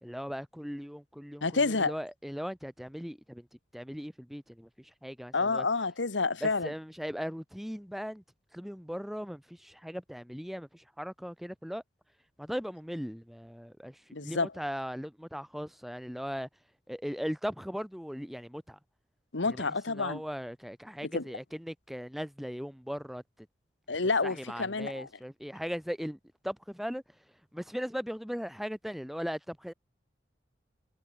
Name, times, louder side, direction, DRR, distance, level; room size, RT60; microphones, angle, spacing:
voice 1, 0.0-3.5 3.7-5.7 6.4-8.2 8.5-11.8 12.4-16.5 16.9-18.8 19.4-23.5 24.2-27.0 27.5-29.7, equal, ahead, 1.4 m, -38 dB
voice 2, 1.4-1.9 5.3-6.7 14.1-14.5 19.3-20.2 21.1-21.2 23.9-25.1, left 3 dB, 90° left, 1.5 m, -29 dB
head